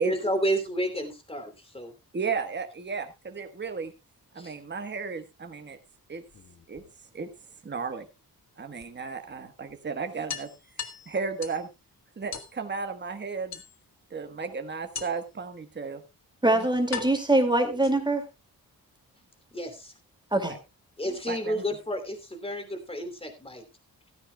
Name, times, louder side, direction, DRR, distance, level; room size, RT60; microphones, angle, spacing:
voice 1, 0.0-1.9 4.4-4.5 19.5-19.9 21.0-23.6, equal, 15° left, 7 dB, 3.0 m, -31 dB
voice 2, 2.1-3.9 4.3-5.8 6.1-6.2 6.7-6.8 7.1-7.3 7.6-8.1 8.6-10.5 11.1-11.7 12.2-13.6 14.1-16.0 16.5-16.7 20.5-20.6 21.3-21.6, right 5 dB, 30° right, 7 dB, 1.4 m, -34 dB
sound 1, 6.3-7.3 8.8-8.9 9.3-9.4 9.7-9.8 10.3-11.7 12.3-12.6 13.5-14.1 14.9-15.4 16.2-16.3 16.9-18.3, left 6 dB, 45° left, 1.6 m, -39 dB
voice 3, 16.4-18.2 20.3-20.6, right 2 dB, 10° right, 5 dB, 2.4 m, -23 dB
15.5 x 13.5 x 2.3 m, 0.26 s
wide cardioid pair, 115°, 37 cm